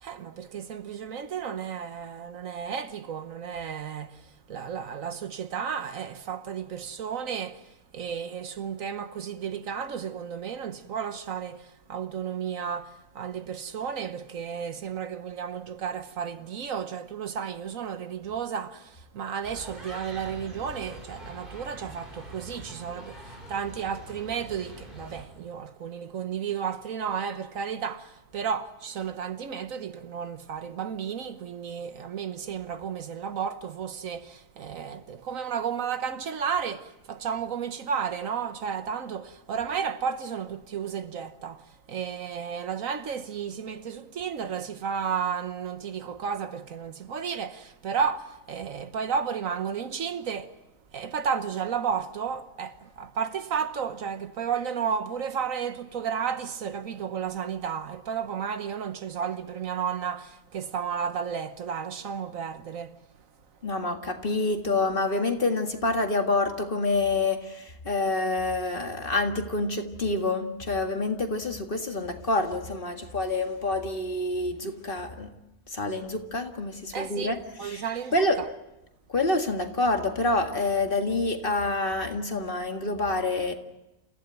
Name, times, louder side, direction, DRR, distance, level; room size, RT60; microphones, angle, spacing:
voice 1, 0.0-50.5 50.9-63.0 76.9-78.4, right 7 dB, 70° right, 1.4 m, -33 dB
sound 1, 19.4-25.2, equal, 35° right, 4.5 m, -44 dB
voice 2, 63.6-75.3 75.7-78.4 79.1-83.5, left 2 dB, 40° left, 2.0 m, -27 dB
28.5 x 15.5 x 9.1 m
omnidirectional pair, 1.5 m